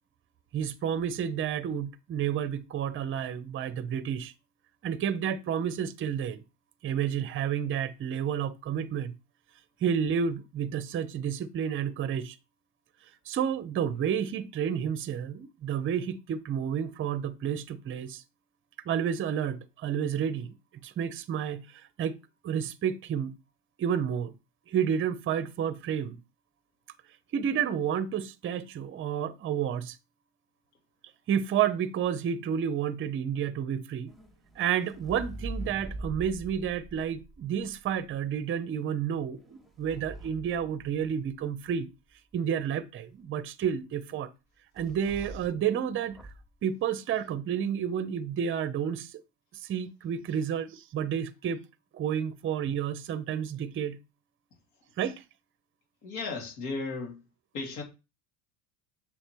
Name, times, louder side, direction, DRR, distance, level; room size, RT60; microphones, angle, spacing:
voice 1, 0.5-4.3 4.8-6.4 6.8-9.1 9.8-12.4 13.3-18.2 18.9-20.5 20.8-22.2 22.4-23.3 23.8-24.3 24.7-26.2 27.3-30.0 31.3-34.1 34.6-41.9 42.3-44.3 44.7-46.2 46.6-49.1 49.5-51.6 51.9-54.0 55.0-55.2, right 8 dB, 30° right, 0.6 m, -30 dB
sound 1, 34.1-38.2 39.1-41.5 44.8-45.7 46.0-46.5, right 1 dB, ahead, 1.1 m, -43 dB
voice 2, 56.0-57.2 57.5-57.8, left 3 dB, 80° left, 2.7 m, -35 dB
7.4 x 3.2 x 4.4 m
cardioid pair, 135°, 44 cm